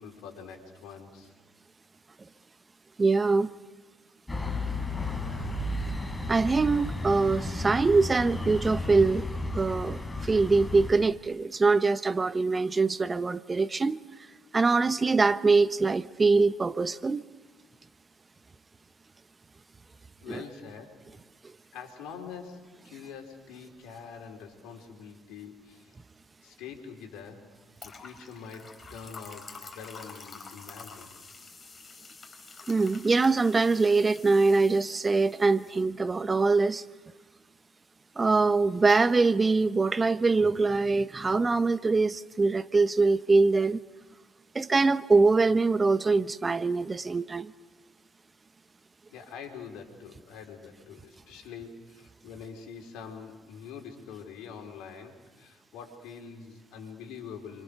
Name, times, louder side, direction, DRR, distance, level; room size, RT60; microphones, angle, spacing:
voice 1, 0.0-1.3 20.2-21.0 21.7-26.0 26.4-27.5 27.8-31.1 49.1-57.6, left 6 dB, 70° left, 4.2 m, -45 dB
voice 2, 3.0-3.5 6.3-9.3 9.5-14.0 14.5-17.2 20.3-20.4 32.7-36.8 38.2-43.8 44.5-47.5, right 3 dB, 30° right, 0.9 m, -23 dB
sound 1, 4.3-10.9, left 2 dB, 15° left, 5.0 m, -33 dB
sound 2, 27.8-35.8, left 4 dB, 30° left, 5.0 m, -48 dB
30.0 x 25.0 x 6.8 m
hypercardioid pair, 55°, 0 cm